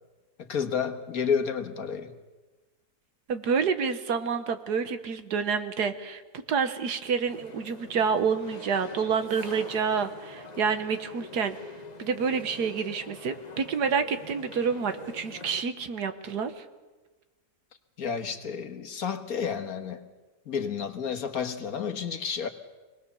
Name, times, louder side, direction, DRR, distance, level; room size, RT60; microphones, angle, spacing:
voice 1, 0.4-2.1 18.0-20.0 20.4-22.5, left 6 dB, 65° left, 6 dB, 1.8 m, -30 dB
voice 2, 3.3-11.5 12.0-16.5, right 6 dB, 85° right, 9 dB, 1.8 m, -28 dB
sound 1, 7.3-15.6, left 3 dB, 30° left, 1.0 m, -45 dB
25.5 x 19.5 x 7.0 m, 1.2 s
omnidirectional pair, 1.7 m